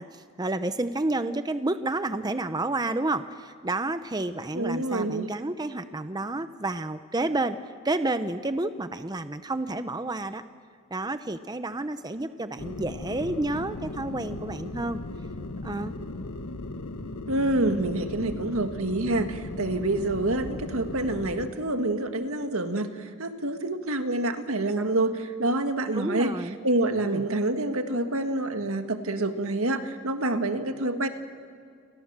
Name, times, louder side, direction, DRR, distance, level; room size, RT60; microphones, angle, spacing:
voice 1, 0.0-7.6 7.8-10.4 10.9-15.0 15.6-15.9 25.9-26.6 27.0-27.2, right 2 dB, 20° right, 10 dB, 0.7 m, -30 dB
voice 2, 4.5-5.3 17.3-26.3 26.6-31.1, right 2 dB, 75° right, 7 dB, 1.8 m, -27 dB
sound 1, 12.6-21.5, left 2 dB, 90° left, 1.2 m, -37 dB
29.0 x 24.0 x 7.5 m, 2.4 s
head